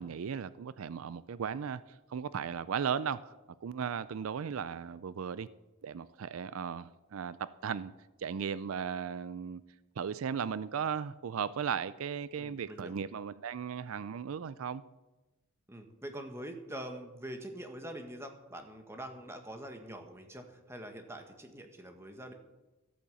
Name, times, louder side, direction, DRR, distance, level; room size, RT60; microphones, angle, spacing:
voice 1, 0.0-1.8 2.1-3.3 3.6-5.5 5.8-7.4 7.6-7.9 8.2-9.6 10.0-14.8, right 7 dB, 80° right, 0.4 m, -36 dB
voice 2, 12.4-12.9 15.7-22.3, right 1 dB, 15° right, 1.5 m, -44 dB
14.5 x 8.7 x 7.0 m
head